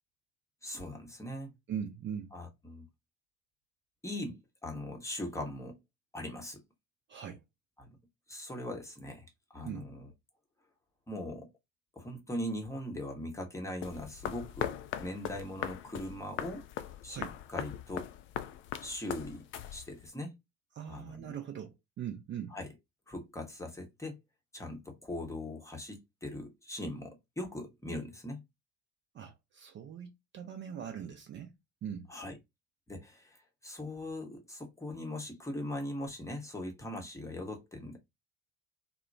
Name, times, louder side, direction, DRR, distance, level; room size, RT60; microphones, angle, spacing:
voice 1, 0.6-1.5 2.3-2.9 4.0-5.8 6.1-6.6 7.8-7.9 8.3-9.3 9.5-10.1 11.1-11.5 12.0-16.7 17.0-18.1 18.8-19.5 19.7-20.3 20.9-21.3 22.5-22.7 23.1-24.2 24.5-28.4 32.1-32.3 32.9-38.0, left 1 dB, 10° left, 0.8 m, -40 dB
voice 2, 1.7-2.3 7.1-7.4 9.6-9.8 17.1-17.3 20.8-22.6 29.1-32.1, right 8 dB, 30° right, 0.6 m, -41 dB
sound 1, 13.8-20.1, left 10 dB, 35° left, 0.4 m, -40 dB
2.8 x 2.1 x 2.4 m
figure-of-eight pair, 60°, 36 cm